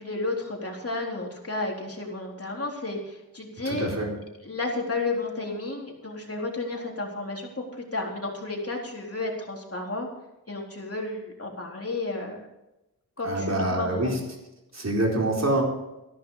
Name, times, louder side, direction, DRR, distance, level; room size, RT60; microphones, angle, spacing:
voice 1, 0.0-3.9 4.4-10.1 10.5-12.4 13.2-14.2, left 2 dB, 40° left, -1 dB, 4.0 m, -32 dB
voice 2, 3.6-4.1 13.2-14.2 14.7-15.6, right 1 dB, 50° right, -1 dB, 4.4 m, -25 dB
14.5 x 12.0 x 5.0 m, 0.94 s
wide cardioid pair, 85°, 35 cm